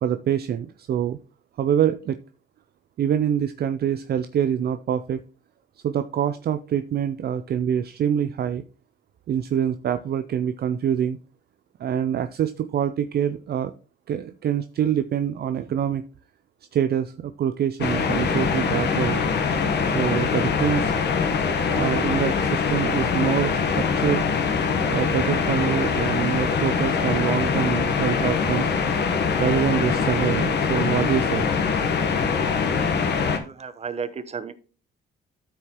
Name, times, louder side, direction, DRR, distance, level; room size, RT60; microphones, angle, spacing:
voice 1, 0.0-1.2 1.6-2.2 3.0-5.2 5.8-8.6 9.3-11.2 11.8-13.7 14.1-16.0 16.7-19.2 19.9-20.9 21.7-24.3 24.9-28.7 29.4-31.5, right 9 dB, 55° right, 10 dB, 0.5 m, -25 dB
sound 1, 17.8-33.4, left 5 dB, 60° left, 1.2 m, -23 dB
voice 2, 33.1-34.5, right 6 dB, 30° right, 11 dB, 0.9 m, -34 dB
13.0 x 4.8 x 3.0 m, 0.37 s
cardioid pair, 90°, 20 cm